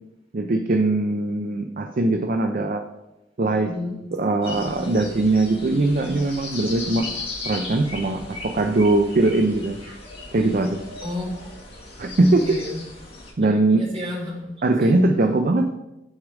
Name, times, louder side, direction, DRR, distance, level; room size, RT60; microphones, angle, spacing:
voice 1, 0.3-2.8 3.4-3.7 4.1-7.1 7.5-9.8 10.3-10.8 12.0-12.6 13.4-13.9 14.6-15.7, right 2 dB, 50° right, 6 dB, 0.5 m, -21 dB
voice 2, 3.6-3.9 6.8-6.9 9.8-9.9 11.0-11.5 12.3-12.8 13.5-15.3, left 1 dB, 30° right, -5 dB, 2.5 m, -32 dB
sound 1, 4.4-13.3, left 3 dB, 30° left, 2.0 m, -37 dB
6.4 x 5.0 x 4.8 m, 0.94 s
head